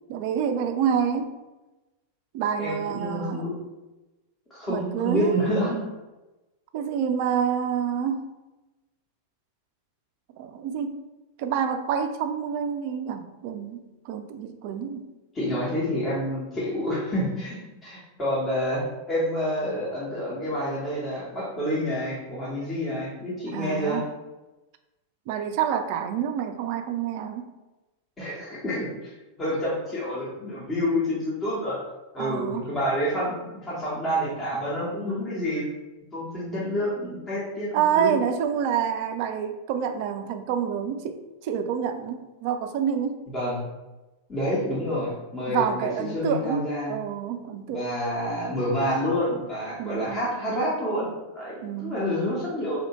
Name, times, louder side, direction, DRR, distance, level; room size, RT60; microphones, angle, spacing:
voice 1, 0.1-1.3 2.3-3.5 4.7-5.6 6.7-8.3 10.4-11.0 11.4-15.1 23.5-24.1 25.3-27.5 32.2-32.7 37.7-43.2 45.5-48.0 49.8-50.4 51.6-52.0, right 8 dB, 45° right, 8 dB, 0.3 m, -28 dB
voice 2, 2.6-3.6 4.5-5.8 15.3-24.0 28.2-29.1 29.4-31.8 32.1-35.6 36.1-37.7 37.9-38.2 43.3-43.7 44.3-46.9 47.7-52.8, equal, 20° left, -7 dB, 1.1 m, -28 dB
2.8 x 2.6 x 3.0 m, 1.1 s
figure-of-eight pair, 90°, 0 cm